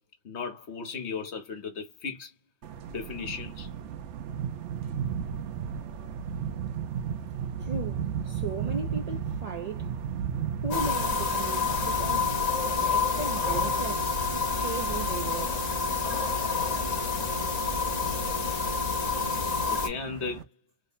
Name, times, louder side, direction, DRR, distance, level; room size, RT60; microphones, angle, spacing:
voice 1, 0.2-2.3 2.9-3.7 19.6-20.5, left 5 dB, 75° left, 1.2 m, -36 dB
sound 1, 2.6-20.4, right 7 dB, 85° right, 0.9 m, -36 dB
voice 2, 7.6-9.9 10.6-12.3 12.8-15.6, right 3 dB, 45° right, 0.6 m, -37 dB
sound 2, 10.7-19.9, left 4 dB, 45° left, 0.7 m, -28 dB
3.1 x 2.0 x 4.0 m
omnidirectional pair, 1.2 m